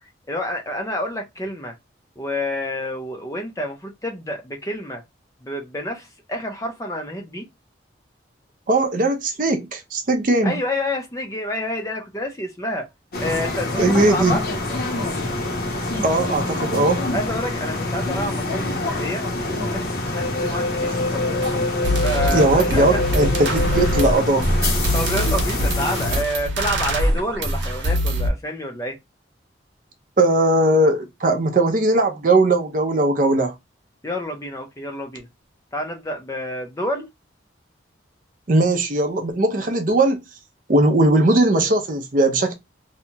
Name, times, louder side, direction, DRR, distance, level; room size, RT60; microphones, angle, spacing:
voice 1, 0.3-1.8 2.2-5.0 5.4-7.5 10.4-12.9 13.2-14.4 17.1-21.4 22.0-23.0 24.1-24.2 24.9-29.0 34.0-35.3 35.7-37.1, left 1 dB, 15° left, 0.4 m, -28 dB
voice 2, 8.7-10.5 13.8-14.4 16.0-17.1 22.3-24.4 30.2-33.5 38.5-40.2 40.7-42.5, right 2 dB, 45° right, 0.5 m, -19 dB
sound 1, 13.1-26.2, left 2 dB, 55° left, 0.8 m, -25 dB
sound 2, 21.4-21.5 21.8-28.3, equal, 80° right, 0.7 m, -23 dB
2.8 x 2.2 x 2.7 m
head